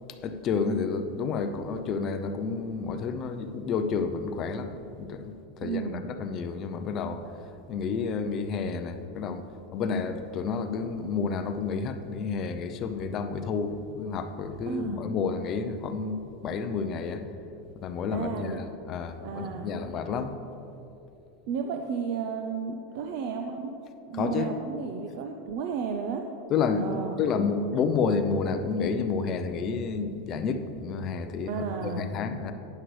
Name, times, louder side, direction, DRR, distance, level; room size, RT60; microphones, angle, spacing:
voice 1, 0.2-7.3 7.7-17.2 17.8-20.4 24.1-24.5 26.5-32.5, left 5 dB, 30° left, 8 dB, 0.6 m, -30 dB
voice 2, 5.6-6.0 14.7-15.0 18.1-18.6 19.2-19.8 21.5-23.7 24.1-26.3 26.8-27.3 31.5-32.1, right 6 dB, 50° right, 4 dB, 0.6 m, -33 dB
12.0 x 9.4 x 3.3 m, 2.8 s
supercardioid pair, 165°, 0 cm